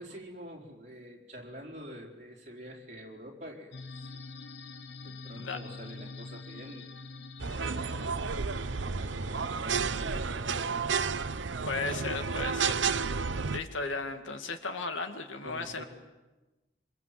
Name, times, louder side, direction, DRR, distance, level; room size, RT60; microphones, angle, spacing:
voice 1, 0.0-3.8 4.0-4.3 5.0-6.8 7.5-8.2 8.8-11.3 15.4-15.8, equal, 40° right, -1 dB, 4.4 m, -46 dB
sound 1, 3.7-10.3, left 3 dB, 65° left, 1.1 m, -46 dB
sound 2, 7.4-13.6, right 5 dB, 75° right, 0.8 m, -31 dB
voice 2, 11.7-12.8 13.1-15.8, left 3 dB, 85° left, 7 dB, 2.2 m, -36 dB
26.5 x 25.5 x 7.7 m, 1.1 s
head